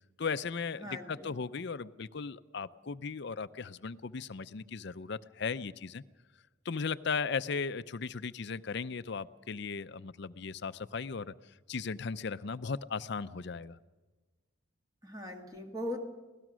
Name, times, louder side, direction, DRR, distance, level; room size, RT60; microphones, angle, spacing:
voice 1, 0.2-6.0 6.6-11.3 11.7-13.8, left 5 dB, 55° left, 14 dB, 0.6 m, -37 dB
voice 2, 0.8-1.3 15.0-16.1, left 1 dB, 15° right, 3 dB, 1.7 m, -40 dB
25.0 x 18.0 x 6.2 m, 1.3 s
head